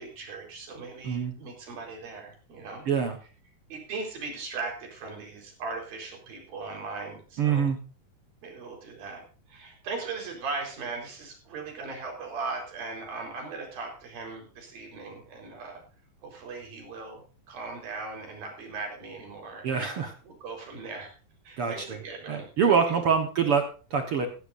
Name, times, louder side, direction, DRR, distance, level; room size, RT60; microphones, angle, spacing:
voice 1, 0.0-2.8 3.7-7.7 8.4-15.8 16.2-21.1 21.4-23.0, right 4 dB, 80° right, 1 dB, 6.1 m, -39 dB
voice 2, 2.9-3.2 7.4-7.8 19.6-20.1 21.6-22.0 22.3-24.3, right 6 dB, 60° right, 6 dB, 1.5 m, -25 dB
15.5 x 15.5 x 2.6 m, 0.37 s
omnidirectional pair, 4.1 m